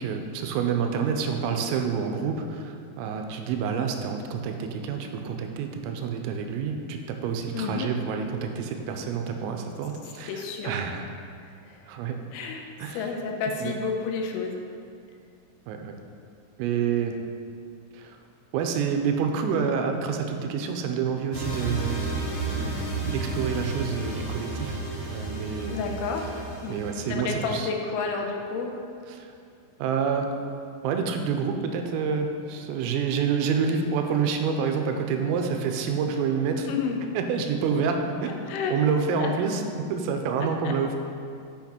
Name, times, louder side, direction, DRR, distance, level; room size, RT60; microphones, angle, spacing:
voice 1, 0.0-11.1 11.9-12.2 12.8-13.1 13.6-13.7 15.7-16.0 16.6-17.2 17.9-18.2 18.5-22.1 22.5-25.8 26.7-27.7 29.1-29.3 29.8-30.3 30.8-36.7 37.1-38.3 38.7-39.6 39.9-41.0, right 6 dB, 85° right, 4 dB, 3.2 m, -28 dB
voice 2, 7.5-7.9 10.3-10.7 11.4-11.9 12.3-12.7 12.9-14.6 25.7-26.3 26.6-26.8 27.1-28.7 36.7-37.0 38.5-39.3 40.6-40.8, left 5 dB, 80° left, 2 dB, 3.3 m, -30 dB
sound 1, 21.3-27.3, right 2 dB, 55° left, 2.6 m, -32 dB
8.2 x 6.0 x 4.4 m, 2.4 s
omnidirectional pair, 5.9 m